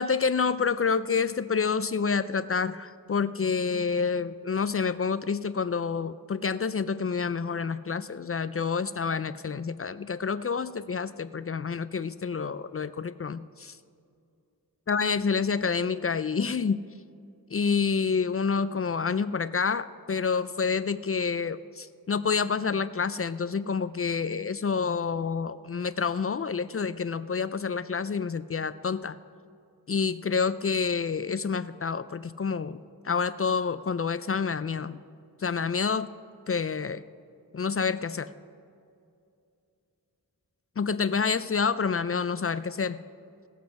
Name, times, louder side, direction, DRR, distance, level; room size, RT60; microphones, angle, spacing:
voice 1, 0.0-13.8 14.9-16.8 17.5-29.2 29.9-35.0 35.4-36.1 36.5-37.0 37.5-38.3 40.8-43.0, left 5 dB, 40° left, 14 dB, 0.4 m, -28 dB
18.0 x 7.5 x 5.7 m, 2.5 s
wide cardioid pair, 70°, 37 cm